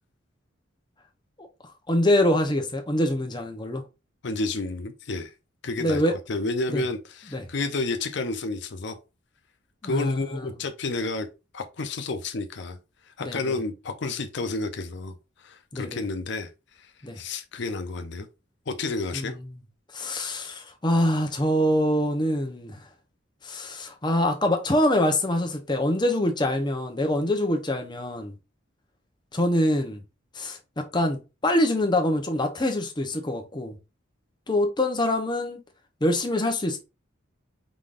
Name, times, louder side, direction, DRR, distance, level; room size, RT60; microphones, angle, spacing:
voice 1, 1.9-3.8 5.8-6.1 6.7-6.8 7.3-7.4 9.8-10.4 13.2-13.5 15.7-16.0 17.0-17.2 19.1-19.4 19.9-22.8 23.4-28.3 29.3-30.0 30.3-33.7 34.5-35.6 36.0-36.8, left 1 dB, 20° left, 0.8 m, -25 dB
voice 2, 4.2-5.3 5.6-9.0 9.8-11.3 11.5-12.8 13.1-15.1 15.4-16.5 16.8-16.9 17.2-18.3 18.7-19.4, left 3 dB, 60° left, 0.5 m, -30 dB
4.9 x 3.8 x 2.5 m
head